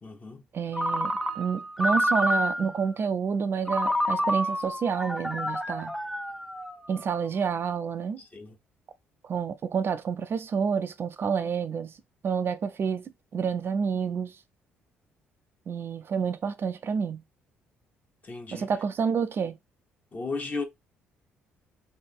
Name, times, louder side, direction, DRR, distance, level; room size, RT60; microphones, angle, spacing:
voice 1, 0.0-0.5 8.2-8.6 18.2-18.7 20.1-20.6, left 3 dB, 30° left, 1.2 m, -35 dB
voice 2, 0.5-5.9 6.9-8.2 9.2-12.0 12.2-14.4 15.7-17.2 18.5-19.6, right 6 dB, 45° right, 0.5 m, -29 dB
Ringtone, 0.7-2.8 3.7-7.0, equal, 5° left, 0.8 m, -28 dB
3.4 x 2.7 x 4.2 m
hypercardioid pair, 50°, 5 cm